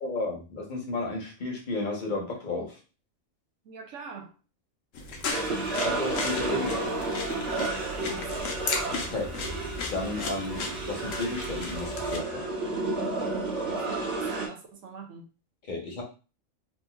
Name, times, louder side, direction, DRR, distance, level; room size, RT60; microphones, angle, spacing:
voice 1, 0.0-2.8 5.8-6.8 9.1-9.3 9.9-12.5 15.7-16.0, left 2 dB, 40° left, 0 dB, 0.9 m, -33 dB
voice 2, 3.6-4.4 8.0-8.6 13.5-15.3, right 5 dB, 70° right, 4 dB, 1.1 m, -43 dB
sound 1, 4.9-12.2, left 3 dB, 75° left, 1.0 m, -35 dB
sound 2, 5.3-14.5, right 2 dB, 55° right, 1.4 m, -32 dB
4.0 x 2.7 x 2.2 m, 0.33 s
omnidirectional pair, 1.4 m